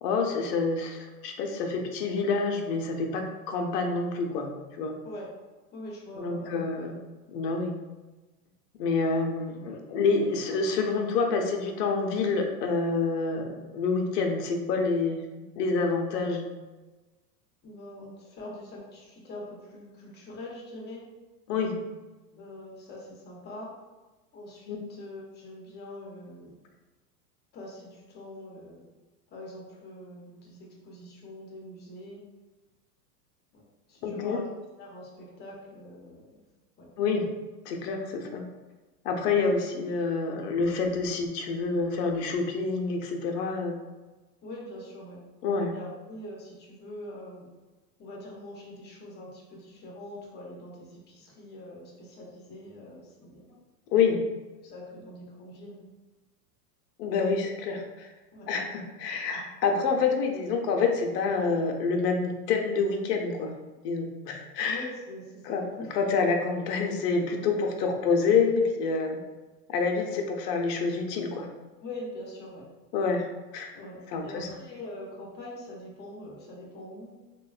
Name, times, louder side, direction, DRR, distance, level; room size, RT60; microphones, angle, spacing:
voice 1, 0.0-4.5 4.8-5.0 6.2-7.0 7.3-7.8 8.8-15.3 15.6-16.5 21.5-21.8 24.7-24.8 34.0-34.4 37.0-37.3 37.7-38.4 39.0-43.8 45.4-45.7 53.9-54.2 57.0-58.1 58.5-63.5 63.8-64.8 65.4-65.6 65.9-69.2 69.7-71.5 72.9-73.3 73.5-73.7 74.1-74.5, left 4 dB, 75° left, 3 dB, 0.7 m, -27 dB
voice 2, 5.7-6.5 6.8-6.9 17.6-21.0 22.4-23.7 24.3-26.6 27.5-28.8 29.3-32.2 33.5-34.5 34.8-36.4 36.8-36.9 44.4-45.2 45.7-47.5 48.0-53.5 54.6-55.9 58.3-58.5 64.7-65.9 71.8-72.7 73.7-77.1, left 1 dB, 20° left, -3 dB, 0.6 m, -43 dB
3.0 x 2.2 x 2.3 m, 1.2 s
hypercardioid pair, 120°, 48 cm